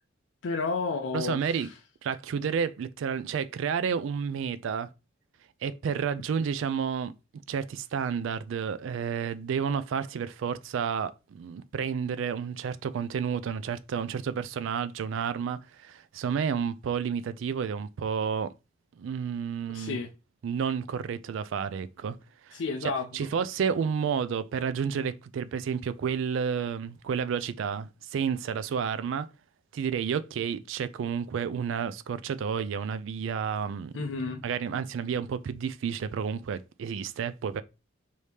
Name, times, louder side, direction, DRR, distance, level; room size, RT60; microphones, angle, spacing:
voice 1, 0.4-1.7 19.7-20.1 22.5-23.3 33.9-34.4, left 4 dB, 65° left, 0.4 m, -32 dB
voice 2, 1.1-1.7 2.0-4.9 5.6-7.1 7.5-18.5 19.0-20.0 20.4-22.2 22.4-29.3 29.7-33.9 34.4-37.6, right 7 dB, 65° right, 0.3 m, -31 dB
4.8 x 2.8 x 3.3 m
head